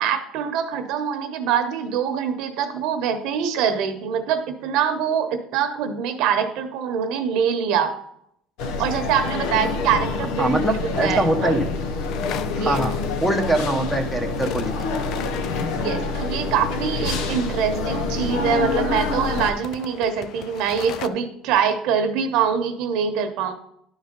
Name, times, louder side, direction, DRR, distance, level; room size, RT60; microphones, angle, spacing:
voice 1, 0.0-7.9 8.8-10.6 11.0-11.6 12.4-12.8 15.7-23.5, right 7 dB, 70° right, 7 dB, 1.0 m, -24 dB
sound 1, 8.6-19.5, left 3 dB, 75° left, 0.9 m, -26 dB
voice 2, 10.4-11.7 12.6-14.9, right 1 dB, 5° left, 5 dB, 0.9 m, -23 dB
sound 2, 12.1-16.1 18.0-21.1, left 10 dB, 60° left, 0.4 m, -37 dB
11.0 x 4.1 x 5.2 m, 0.73 s
cardioid pair, 140°, 0 cm